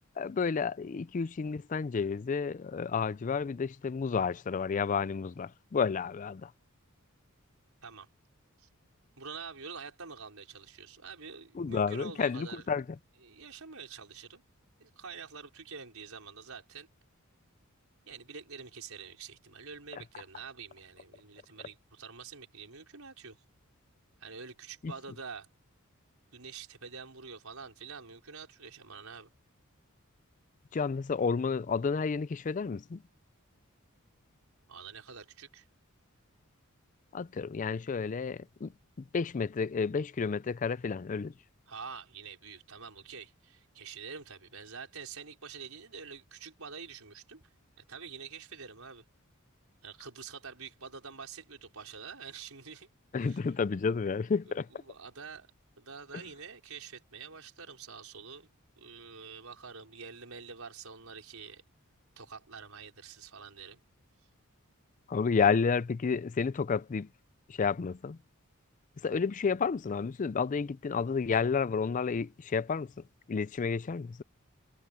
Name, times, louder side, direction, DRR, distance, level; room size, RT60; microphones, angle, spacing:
voice 1, 0.2-6.5 11.6-12.8 24.8-24.9 30.7-33.0 37.1-38.7 39.1-41.3 53.1-54.7 65.1-67.1 67.5-68.2 69.0-72.9 73.3-74.2, left 5 dB, 35° left, 0.4 m, -31 dB
voice 2, 9.2-12.6 13.2-14.4 14.8-16.9 18.1-23.4 24.2-25.5 26.3-29.3 34.7-35.7 41.7-47.5 47.9-49.0 49.8-52.9 53.2-53.4 54.7-55.5 55.8-58.5 58.8-61.6 62.2-63.8, right 5 dB, 80° right, 4.8 m, -46 dB
head